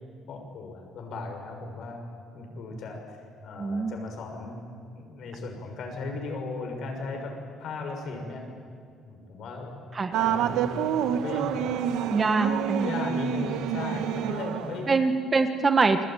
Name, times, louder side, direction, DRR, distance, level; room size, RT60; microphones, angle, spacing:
voice 1, 0.3-2.0 2.3-3.2 3.4-4.6 5.0-7.3 7.6-8.4 9.0-9.8 10.2-10.7 11.1-12.0 12.8-14.9, left 3 dB, 55° left, 3 dB, 6.4 m, -36 dB
voice 2, 3.6-3.9 9.9-10.1 12.1-12.9 14.9-16.0, right 4 dB, 25° right, 8 dB, 1.2 m, -24 dB
sound 1, 10.1-14.9, right 9 dB, 75° right, 1.3 m, -28 dB
28.5 x 21.5 x 9.2 m, 2.2 s
cardioid pair, 150°, 0 cm